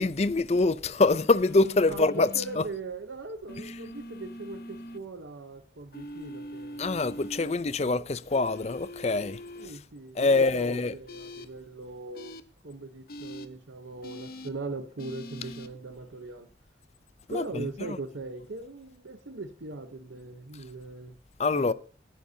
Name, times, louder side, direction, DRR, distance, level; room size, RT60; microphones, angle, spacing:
voice 1, 0.0-2.3 2.6-2.7 6.8-9.4 10.2-10.9 17.3-17.7 21.4-21.7, left 3 dB, 35° left, 0.5 m, -25 dB
sound 1, 1.3-2.6 3.5-5.0 5.9-7.5 8.3-9.7 11.1-11.5 12.1-12.4 13.1-13.5 14.0-14.5 15.0-15.7, left 1 dB, 55° left, 0.9 m, -42 dB
voice 2, 1.9-7.0 9.6-12.3 12.6-16.5 17.3-21.2 21.5-21.7, right 3 dB, 85° right, 0.9 m, -40 dB
17.5 x 10.0 x 2.8 m
head